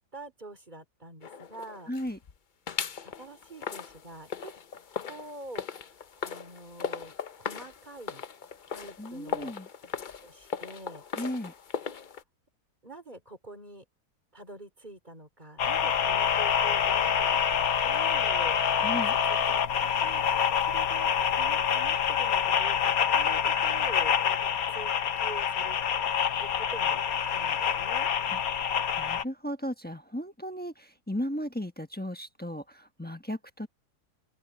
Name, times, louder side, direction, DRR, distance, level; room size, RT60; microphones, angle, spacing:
voice 1, 0.0-1.9 3.0-4.5 5.0-6.0 6.2-8.2 8.7-9.5 10.2-11.0 11.9-12.0 12.8-13.9 14.3-18.6 18.9-19.6 20.0-24.3 24.7-25.8 26.4-27.0 27.3-28.1, right 2 dB, 25° right, 3.5 m, -46 dB
sound 1, 1.2-2.3 2.7-12.2, left 7 dB, 50° left, 0.6 m, -38 dB
voice 2, 1.9-2.2 9.0-9.7 11.2-11.5 18.8-19.1 28.3-28.4 29.0-33.7, equal, 5° left, 1.0 m, -35 dB
sound 2, 15.6-29.2, left 8 dB, 65° left, 1.4 m, -26 dB
open air
omnidirectional pair, 1.7 m